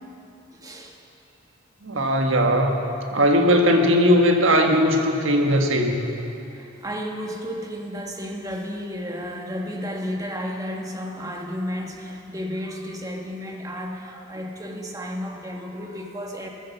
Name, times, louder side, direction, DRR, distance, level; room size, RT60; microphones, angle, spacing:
voice 1, 0.5-1.0 6.4-16.5, equal, 20° right, 1 dB, 1.3 m, -33 dB
voice 2, 1.8-2.8 3.1-6.1, equal, 80° right, 3 dB, 1.5 m, -19 dB
14.5 x 11.5 x 7.1 m, 2.8 s
head